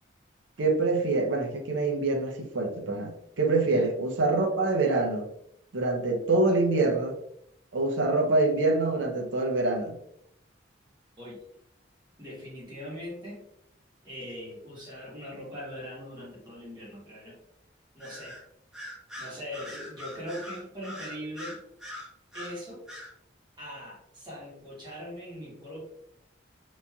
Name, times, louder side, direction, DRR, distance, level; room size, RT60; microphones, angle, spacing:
voice 1, 0.6-5.3 5.7-7.2 7.7-10.0, right 3 dB, 75° right, 3 dB, 0.6 m, -25 dB
voice 2, 12.2-13.4 14.0-17.4 17.9-18.4 19.2-21.6 22.3-22.8 23.6-25.8, equal, 25° right, -6 dB, 1.1 m, -41 dB
Bird vocalization bird call bird song, 18.0-18.4 18.7-22.6 22.9-23.1, left 1 dB, 5° right, 0.8 m, -42 dB
3.0 x 2.6 x 2.2 m, 0.74 s
head